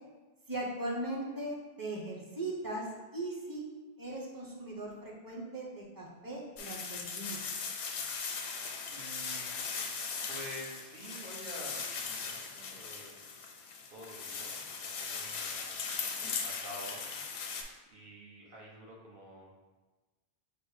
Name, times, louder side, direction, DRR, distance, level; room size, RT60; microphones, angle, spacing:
voice 1, 0.5-2.9 3.1-3.6 4.0-7.4, right 1 dB, 20° right, -3 dB, 0.7 m, -39 dB
sound 1, 6.6-17.6, left 5 dB, 85° left, 0.9 m, -39 dB
voice 2, 8.9-9.6 10.3-13.1 13.9-15.8 16.4-17.1 17.9-19.5, equal, 55° right, -3 dB, 1.1 m, -48 dB
5.0 x 2.1 x 4.7 m, 1.2 s
omnidirectional pair, 1.1 m